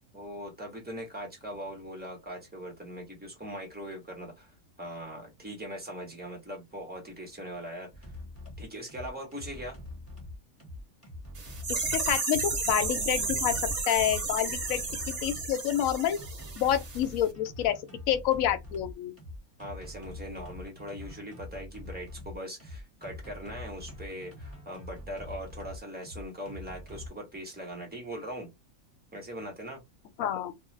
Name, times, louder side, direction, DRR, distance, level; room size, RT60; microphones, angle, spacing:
voice 1, 0.1-8.1 8.6-9.8 19.6-28.5 29.1-29.8, equal, 10° right, 0.9 m, -41 dB
sound 1, 7.9-27.1, left 2 dB, 10° left, 1.4 m, -44 dB
sound 2, 11.3-17.0 17.2-17.3, right 3 dB, 55° right, 1.1 m, -32 dB
voice 2, 11.7-13.6 13.9-16.2 16.6-17.8 18.1-19.1 30.2-30.5, left 10 dB, 75° left, 1.0 m, -28 dB
2.4 x 2.3 x 3.2 m
omnidirectional pair, 1.5 m